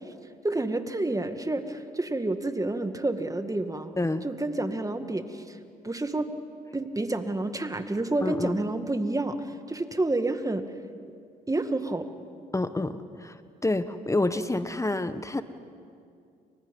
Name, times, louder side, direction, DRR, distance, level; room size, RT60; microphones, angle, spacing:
voice 1, 0.4-4.0 4.2-5.6 5.8-6.3 6.7-10.6 11.5-12.1, right 2 dB, 15° right, 8 dB, 1.9 m, -29 dB
voice 2, 8.2-8.6 12.5-15.4, left 2 dB, 15° left, 12 dB, 1.3 m, -28 dB
30.0 x 26.0 x 5.5 m, 2.4 s
hypercardioid pair, 55°, 19 cm